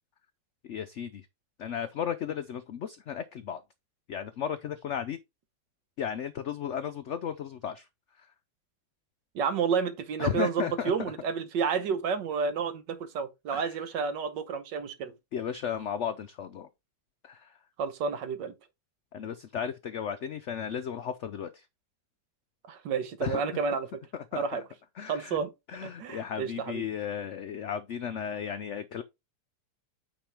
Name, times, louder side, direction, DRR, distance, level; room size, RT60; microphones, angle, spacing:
voice 1, 0.6-1.3 1.6-3.6 4.1-5.2 6.0-7.9 8.2-8.3 10.2-11.1 13.5-13.8 15.3-16.7 17.2-17.6 19.1-21.7 23.2-23.6 24.1-24.6 25.0-25.4 25.7-29.0, left 8 dB, 85° left, 0.6 m, -35 dB
voice 2, 9.4-15.1 17.8-18.5 22.7-23.9 24.3-24.6 25.1-25.5 25.8-26.9, right 6 dB, 80° right, 1.6 m, -30 dB
9.0 x 4.6 x 3.4 m
omnidirectional pair, 1.9 m